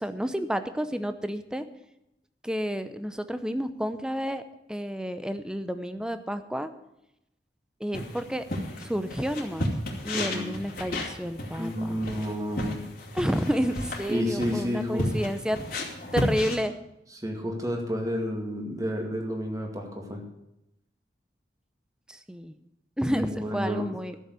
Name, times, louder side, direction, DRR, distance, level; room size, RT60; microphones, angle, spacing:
voice 1, 0.0-1.7 2.4-4.4 4.7-6.7 7.8-8.4 8.8-9.7 10.0-12.0 13.1-15.6 16.1-16.7 22.1-22.5 23.0-24.1, equal, 5° right, 10 dB, 0.7 m, -30 dB
sound 1, 7.9-16.6, left 1 dB, 55° left, 2.7 m, -33 dB
voice 2, 10.1-10.5 11.6-12.9 14.1-15.2 17.2-20.2 23.1-23.8, equal, 20° right, 1 dB, 2.1 m, -30 dB
13.0 x 7.2 x 8.2 m, 0.87 s
head